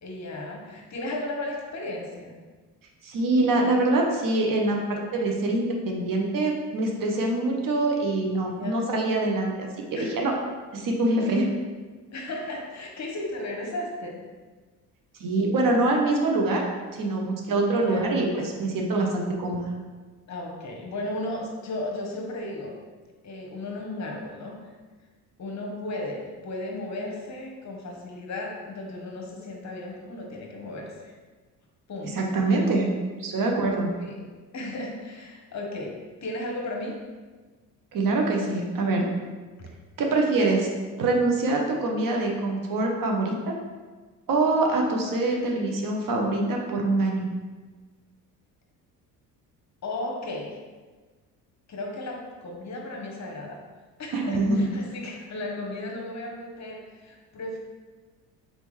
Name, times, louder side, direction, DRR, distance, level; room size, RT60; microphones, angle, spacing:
voice 1, 0.0-2.3 8.5-8.8 9.9-10.2 12.1-14.2 17.8-18.1 20.3-22.7 23.2-24.5 25.4-31.1 31.9-32.7 34.0-34.1 34.5-35.9 36.2-37.0 39.6-39.7 49.8-50.6 51.7-53.6 54.0-57.6, left 2 dB, 40° left, 0 dB, 1.0 m, -35 dB
voice 2, 3.0-10.3 10.7-11.5 15.2-16.6 16.9-19.7 32.1-32.9 33.2-33.9 37.9-39.1 40.0-40.7 41.0-43.5 44.3-47.3 54.1-54.7, right 2 dB, 50° right, 1 dB, 0.9 m, -24 dB
4.0 x 3.5 x 3.2 m, 1.4 s
supercardioid pair, 70°, 43 cm